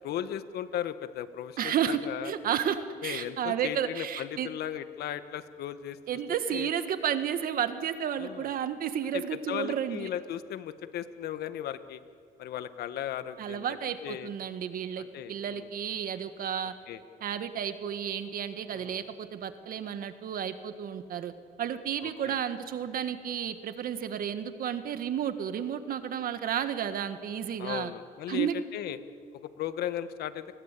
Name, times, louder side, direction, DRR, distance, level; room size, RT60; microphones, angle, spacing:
voice 1, 0.0-2.3 3.0-6.0 6.5-6.7 8.2-8.6 9.1-12.0 12.4-14.3 15.0-15.7 16.9-17.0 18.7-19.0 22.0-22.4 27.6-29.0 29.3-30.4, left 10 dB, 70° left, 11 dB, 1.4 m, -36 dB
voice 2, 1.6-4.5 6.1-10.1 13.4-16.7 17.2-21.3 21.6-27.9 28.3-28.5, right 9 dB, 60° right, 9 dB, 1.7 m, -32 dB
29.0 x 20.5 x 8.4 m, 2.2 s
cardioid pair, 110°, 17 cm